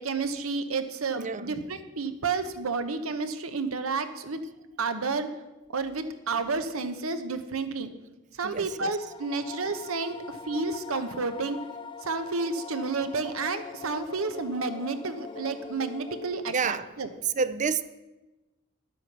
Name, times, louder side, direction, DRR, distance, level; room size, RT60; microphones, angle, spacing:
voice 1, 0.0-4.4 4.8-5.3 5.7-7.9 8.3-11.6 12.0-17.1, right 4 dB, 85° right, 1.0 m, -31 dB
voice 2, 1.2-1.7 8.4-8.9 16.5-16.9 17.4-17.8, right 5 dB, 35° right, 0.5 m, -29 dB
sound 1, 8.6-16.8, left 4 dB, 25° left, 0.7 m, -43 dB
10.5 x 8.3 x 6.1 m
head